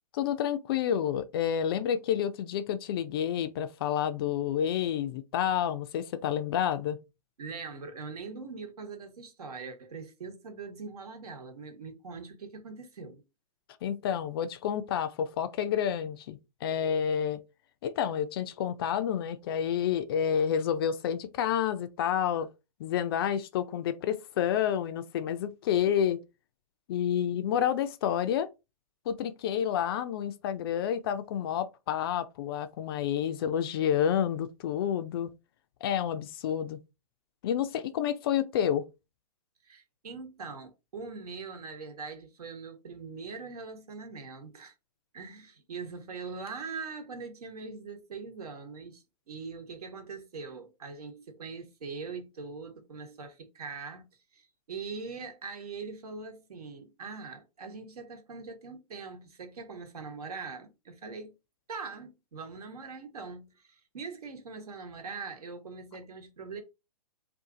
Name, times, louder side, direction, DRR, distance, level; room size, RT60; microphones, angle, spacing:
voice 1, 0.1-7.0 13.8-17.4 17.8-22.5 22.8-26.2 26.9-28.5 29.1-35.3 35.8-36.8 37.4-38.8, left 9 dB, 40° left, 0.4 m, -29 dB
voice 2, 7.4-13.2 39.6-44.7 45.1-54.1 54.3-61.3 61.7-66.6, right 4 dB, 70° right, 1.1 m, -42 dB
2.6 x 2.4 x 3.7 m
hypercardioid pair, 130°, 20 cm